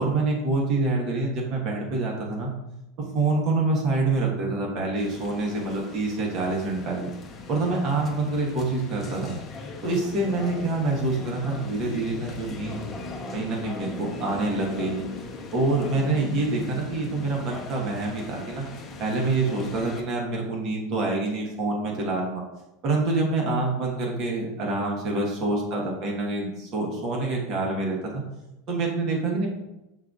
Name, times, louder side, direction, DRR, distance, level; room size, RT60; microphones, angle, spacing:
voice 1, 0.0-2.5 3.0-7.1 7.5-9.4 9.8-12.9 13.3-15.0 15.5-18.7 19.0-22.4 22.8-28.2 28.7-29.5, right 2 dB, 50° right, -1 dB, 1.0 m, -26 dB
sound 1, 4.9-20.0, left 3 dB, 25° left, 0.7 m, -39 dB
7.4 x 2.5 x 2.3 m, 0.94 s
supercardioid pair, 110°, 0 cm